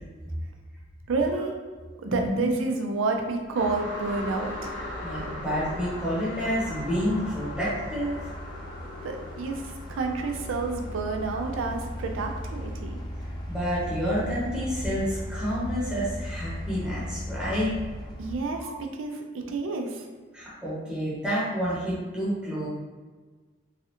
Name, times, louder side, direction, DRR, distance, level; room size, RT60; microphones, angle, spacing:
voice 1, 1.1-1.5 2.0-4.7 9.0-13.0 18.2-20.1, right 3 dB, 85° right, 3 dB, 0.4 m, -29 dB
voice 2, 2.1-2.5 5.0-8.1 13.5-17.7 18.6-18.7 20.3-22.7, equal, 5° right, -9 dB, 0.8 m, -29 dB
sound 1, 3.2-18.3, equal, 20° left, 0.4 m, -38 dB
sound 2, 3.5-12.8, left 1 dB, 55° left, 0.7 m, -40 dB
3.2 x 2.4 x 2.8 m, 1.4 s
head